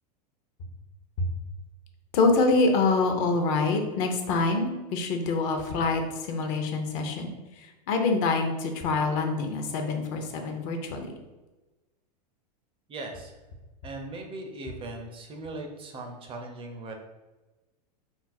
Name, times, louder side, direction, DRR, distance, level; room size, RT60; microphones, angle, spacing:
voice 1, 2.1-7.3 7.6-11.1, left 3 dB, 55° left, 4 dB, 0.6 m, -26 dB
voice 2, 12.9-13.3 13.8-16.9, right 2 dB, 25° right, 3 dB, 0.5 m, -39 dB
2.5 x 2.0 x 3.9 m, 1.1 s
hypercardioid pair, 105°, 21 cm